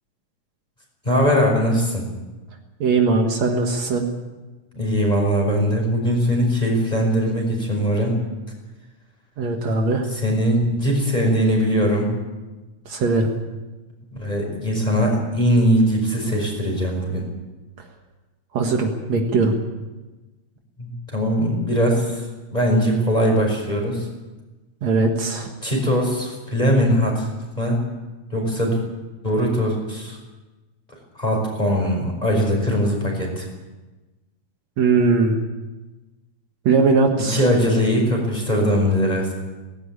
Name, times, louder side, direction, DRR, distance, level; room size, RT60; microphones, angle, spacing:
voice 1, 1.0-2.1 4.7-8.2 10.1-12.1 14.1-17.2 20.8-24.1 25.6-27.3 27.6-27.8 28.3-28.8 29.2-30.2 31.2-33.5 37.2-39.3, equal, 15° left, 0 dB, 5.4 m, -21 dB
voice 2, 2.8-4.0 9.4-10.1 12.9-13.3 18.5-19.5 24.8-25.5 34.8-35.4 36.7-37.4, right 3 dB, 65° right, 3 dB, 2.8 m, -19 dB
18.0 x 16.5 x 8.9 m, 1.2 s
omnidirectional pair, 3.4 m